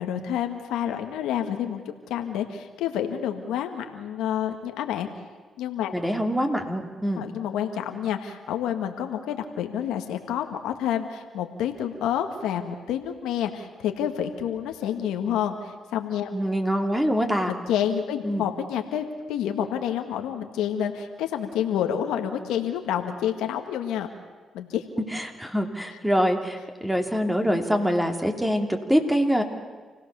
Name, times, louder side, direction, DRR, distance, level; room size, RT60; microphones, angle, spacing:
voice 1, 0.0-1.8 2.1-5.1 5.6-5.9 7.2-16.3 17.5-24.1 24.5-24.8, left 9 dB, 85° left, 5 dB, 1.8 m, -28 dB
voice 2, 5.9-7.2 16.3-17.5 18.2-18.5 25.1-29.4, equal, 5° right, 3 dB, 3.1 m, -24 dB
28.5 x 17.0 x 7.0 m, 1.4 s
supercardioid pair, 65°, 0 cm